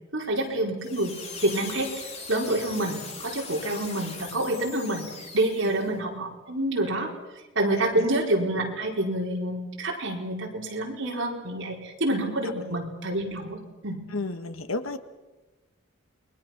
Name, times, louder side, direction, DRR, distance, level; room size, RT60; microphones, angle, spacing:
voice 1, 0.1-1.9 2.3-7.1 7.5-14.0, right 1 dB, 65° right, -1 dB, 4.6 m, -28 dB
sound 1, 0.8-6.0, left 4 dB, 30° left, 3.0 m, -40 dB
voice 2, 14.1-15.0, left 2 dB, 85° left, 9 dB, 1.5 m, -32 dB
29.0 x 21.5 x 6.0 m, 1.1 s
head